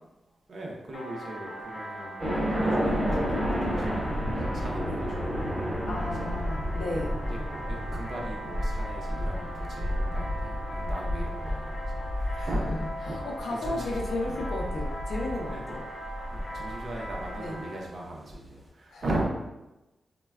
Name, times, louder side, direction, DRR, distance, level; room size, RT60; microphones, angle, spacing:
voice 1, 0.5-2.2 2.5-4.3 4.5-5.2 6.2-6.3 7.3-7.4 7.7-12.7 13.1-13.2 13.6-13.9 14.2-14.4 15.5-15.8 16.3-19.3, right 1 dB, 60° right, -2 dB, 0.6 m, -38 dB
sound 1, 0.9-17.8, equal, 25° left, 0.7 m, -40 dB
sound 2, 2.2-17.3, equal, 25° right, 0.9 m, -31 dB
voice 2, 5.9-7.2 12.3-12.8 13.1-15.9 17.4-17.6 18.9-19.0, left 2 dB, 80° left, -1 dB, 0.5 m, -34 dB
3.1 x 2.2 x 2.2 m, 1.0 s
wide cardioid pair, 105°, 0 cm